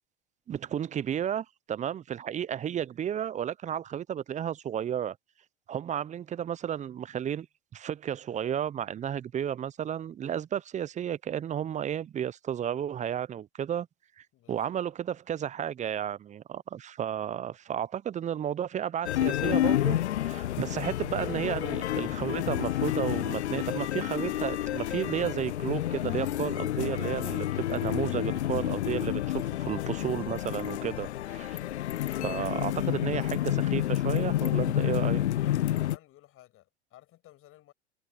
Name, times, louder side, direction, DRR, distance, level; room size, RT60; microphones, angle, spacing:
voice 1, 0.5-5.2 5.7-7.5 7.7-13.9 14.2-31.6 32.2-35.3, right 9 dB, 20° right, 0.7 m, -33 dB
voice 2, 14.3-14.9 35.2-37.7, left 15 dB, 40° left, 6.0 m, -55 dB
sound 1, 19.0-36.0, left 13 dB, 85° left, 0.5 m, -29 dB
hypercardioid pair, 90°, 33 cm